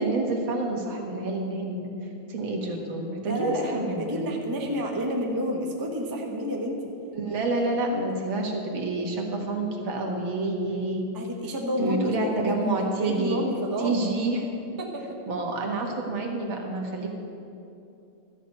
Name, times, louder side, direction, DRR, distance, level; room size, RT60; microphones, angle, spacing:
voice 1, 0.0-1.9 2.3-4.3 7.1-11.1 11.8-13.4 13.8-14.4 15.3-17.1, right 2 dB, 70° right, 1 dB, 2.3 m, -28 dB
voice 2, 3.3-6.8 7.9-8.1 11.1-12.5 12.9-14.0 14.8-15.0, equal, 15° right, 0 dB, 0.9 m, -29 dB
13.0 x 6.7 x 8.8 m, 2.7 s
omnidirectional pair, 2.3 m